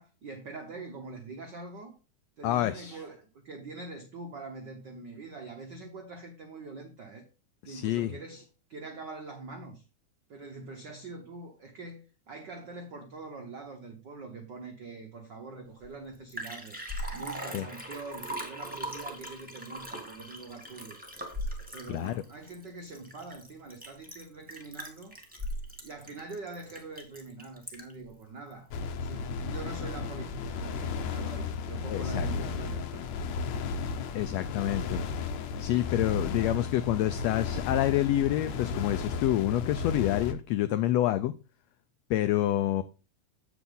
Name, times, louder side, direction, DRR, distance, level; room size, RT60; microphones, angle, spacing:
voice 1, 0.0-1.9 2.4-7.2 7.6-8.4 8.7-9.8 10.3-12.0 12.3-16.8 17.1-21.0 21.7-25.2 25.8-28.7 29.0-33.0 33.5-33.8, right 3 dB, 85° right, 0.9 m, -44 dB
voice 2, 2.4-3.0 7.6-8.1 17.5-17.7 21.9-22.2 31.9-32.3 34.1-35.0 35.6-41.3 42.1-42.8, left 13 dB, 85° left, 1.5 m, -28 dB
Liquid, 15.8-15.9 16.1-28.0 28.5-28.6, equal, 5° right, 1.0 m, -40 dB
sound 1, 28.7-40.3, left 5 dB, 70° left, 1.8 m, -34 dB
8.3 x 6.9 x 3.8 m
omnidirectional pair, 3.6 m